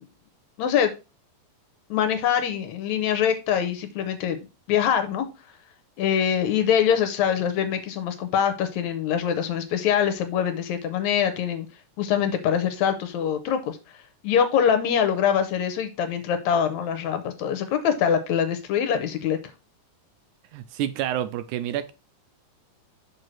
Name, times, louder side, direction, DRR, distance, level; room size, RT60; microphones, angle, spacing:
voice 1, 0.6-0.9 1.9-4.4 4.7-5.3 6.0-11.7 12.0-13.8 14.2-19.4, left 8 dB, 75° left, 2.0 m, -24 dB
voice 2, 20.5-21.9, right 11 dB, 80° right, 1.9 m, -28 dB
6.5 x 4.6 x 4.4 m
omnidirectional pair, 3.6 m